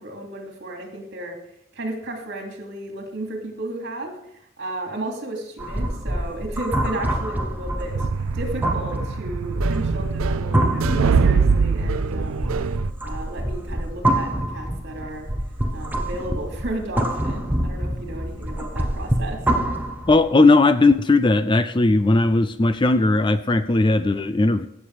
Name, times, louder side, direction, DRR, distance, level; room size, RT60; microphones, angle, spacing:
voice 1, 0.0-1.4 1.7-4.1 4.6-8.0 8.3-12.5 13.0-15.3 15.7-19.4, right 1 dB, 55° right, 2 dB, 2.8 m, -33 dB
sound 1, 5.6-20.3, right 1 dB, 10° right, 1.1 m, -26 dB
sound 2, 7.9-12.9, right 6 dB, 75° right, 0.4 m, -23 dB
voice 2, 20.1-24.7, left 2 dB, 25° left, 12 dB, 0.4 m, -17 dB
16.5 x 7.3 x 4.9 m, 0.77 s
head